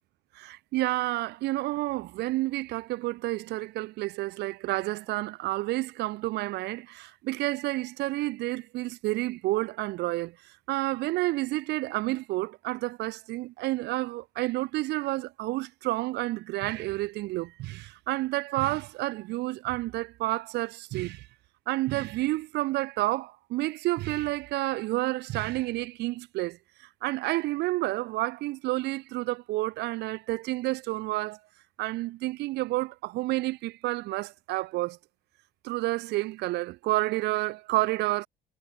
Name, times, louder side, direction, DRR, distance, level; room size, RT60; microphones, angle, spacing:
voice 1, 0.4-10.4 10.7-21.3 21.7-26.6 27.0-31.4 31.8-35.0 35.6-38.3, right 19 dB, 80° right, 0.7 m, -30 dB
cardioid pair, 110°, 17 cm